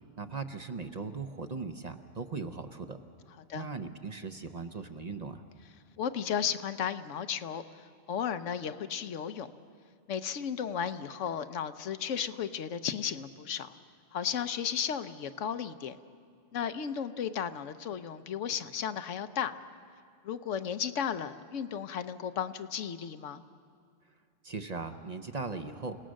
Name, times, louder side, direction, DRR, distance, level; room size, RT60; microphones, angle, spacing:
voice 1, 0.2-3.0 3.5-5.4 24.4-26.0, right 4 dB, 40° right, 8 dB, 0.8 m, -38 dB
voice 2, 6.0-9.5 10.1-13.7 14.1-16.0 16.5-19.5 20.2-23.4, left 8 dB, 80° left, 11 dB, 1.1 m, -34 dB
29.0 x 17.5 x 6.4 m, 2.3 s
omnidirectional pair, 1.2 m